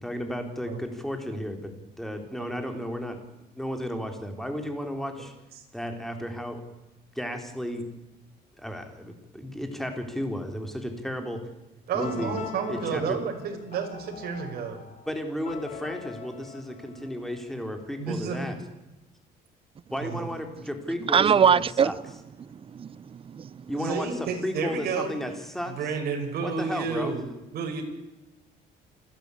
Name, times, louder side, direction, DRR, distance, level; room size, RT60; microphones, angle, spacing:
voice 1, 0.0-1.7 2.0-3.2 3.6-5.3 5.7-6.6 7.2-7.8 8.6-11.4 11.9-12.4 12.7-13.2 15.1-18.6 19.9-21.9 23.7-25.7 26.4-27.1, equal, ahead, 4.0 m, -33 dB
voice 2, 11.9-14.8 18.0-18.4 20.0-20.3 23.8-25.1 25.7-27.8, right 5 dB, 65° right, 5.4 m, -31 dB
sound 1, 12.0-17.8, left 7 dB, 45° left, 3.3 m, -44 dB
voice 3, 21.0-21.9 22.4-23.6, right 7 dB, 35° right, 0.6 m, -23 dB
28.5 x 12.0 x 8.6 m
cardioid pair, 110°, 17 cm